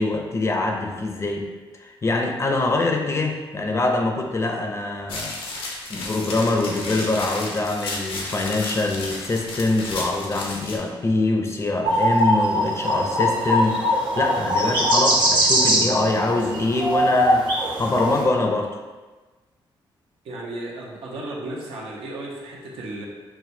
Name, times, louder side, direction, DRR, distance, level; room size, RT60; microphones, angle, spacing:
voice 1, 0.0-1.5 1.7-5.6 5.9-18.7, left 2 dB, 30° left, 3 dB, 0.5 m, -24 dB
sound 1, 5.1-10.8, left 2 dB, 85° left, 0.7 m, -33 dB
sound 2, 11.8-18.2, equal, 55° right, 1.1 m, -21 dB
voice 2, 20.2-23.1, right 1 dB, 85° right, -3 dB, 0.9 m, -34 dB
5.9 x 2.2 x 2.7 m, 1.3 s
cardioid pair, 105°, 9 cm